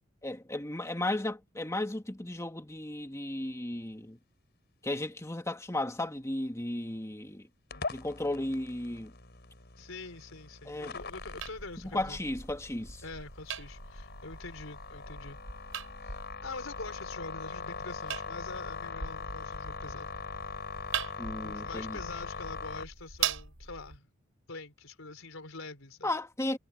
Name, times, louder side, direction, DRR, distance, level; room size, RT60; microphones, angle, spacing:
voice 1, 0.2-4.2 4.8-7.5 7.9-9.1 10.7-11.0 11.9-13.0 21.2-22.0 26.0-26.6, left 1 dB, 15° left, 1.9 m, -35 dB
sound 1, 7.7-22.8, left 5 dB, 55° left, 5.0 m, -42 dB
voice 2, 9.8-12.2 13.0-15.4 16.0-20.1 20.9-21.1 21.4-24.1 24.5-26.1, left 3 dB, 85° left, 4.0 m, -45 dB
sound 2, 11.0-24.0, right 7 dB, 85° right, 4.7 m, -41 dB
head